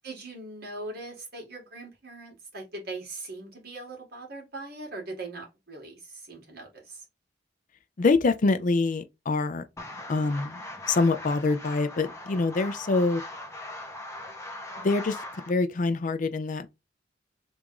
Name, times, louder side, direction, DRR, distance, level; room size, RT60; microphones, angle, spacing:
voice 1, 0.0-7.0, right 2 dB, 60° right, 1.8 m, -40 dB
voice 2, 8.0-9.6 10.1-10.6 10.9-13.2 14.8-16.7, left 3 dB, 45° left, 0.5 m, -25 dB
sound 1, 9.8-15.5, left 1 dB, 15° left, 0.8 m, -40 dB
3.6 x 2.6 x 4.6 m
head